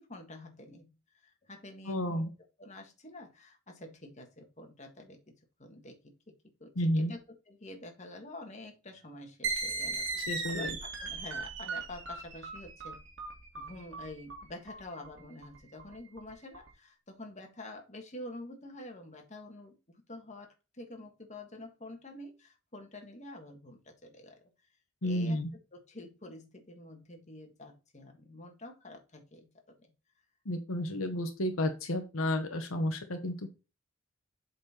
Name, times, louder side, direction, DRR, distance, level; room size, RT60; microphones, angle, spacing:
voice 1, 0.0-2.3 2.6-5.3 5.6-6.3 6.6-6.7 7.1-7.2 7.5-13.0 13.5-19.7 20.1-24.7 25.0-25.4 25.7-29.5 29.8-29.9, left 1 dB, 35° left, 3 dB, 1.6 m, -48 dB
voice 2, 1.9-2.3 6.8-7.1 10.2-10.8 25.0-25.5 30.4-33.5, left 1 dB, 80° left, 6 dB, 1.1 m, -31 dB
sound 1, 9.4-16.7, right 4 dB, 60° right, 1.8 m, -38 dB
7.8 x 4.3 x 4.3 m, 0.30 s
head